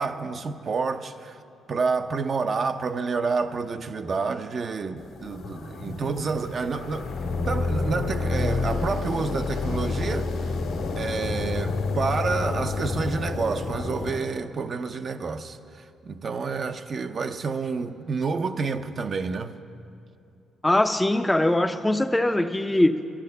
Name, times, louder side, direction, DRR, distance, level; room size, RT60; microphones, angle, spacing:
voice 1, 0.0-1.4 1.7-7.1 7.5-10.3 11.0-19.6, right 4 dB, 45° right, 0.6 m, -29 dB
sound 1, 5.0-14.2, left 3 dB, 85° left, 1.7 m, -29 dB
voice 2, 20.6-23.1, left 1 dB, 10° left, 0.5 m, -22 dB
12.5 x 10.5 x 6.7 m
cardioid pair, 90°, 0 cm